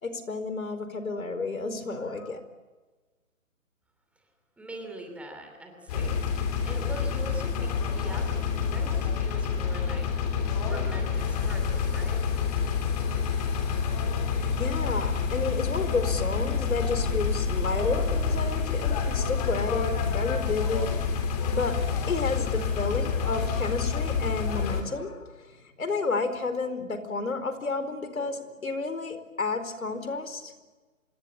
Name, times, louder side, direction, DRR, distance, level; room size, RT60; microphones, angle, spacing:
voice 1, 0.0-2.4 14.3-21.1 21.5-30.5, left 3 dB, 80° left, 10 dB, 4.6 m, -31 dB
voice 2, 4.6-6.2 6.6-10.1 10.6-12.3, right 1 dB, 5° right, 2 dB, 2.8 m, -42 dB
sound 1, 5.9-24.8, left 6 dB, 30° left, 3.4 m, -28 dB
27.0 x 21.0 x 8.5 m, 1.3 s
hypercardioid pair, 155°, 41 cm